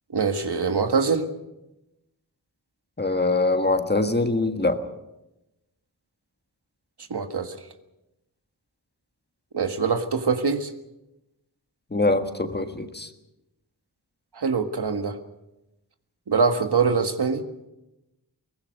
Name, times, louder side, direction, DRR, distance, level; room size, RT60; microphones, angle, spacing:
voice 1, 0.1-1.3 7.1-7.6 9.5-10.7 14.3-15.2 16.3-17.4, right 5 dB, 80° right, 1.7 m, -23 dB
voice 2, 3.0-4.9 11.9-13.1, left 2 dB, 25° left, 1.6 m, -23 dB
22.5 x 20.0 x 6.5 m
wide cardioid pair, 90°, 40 cm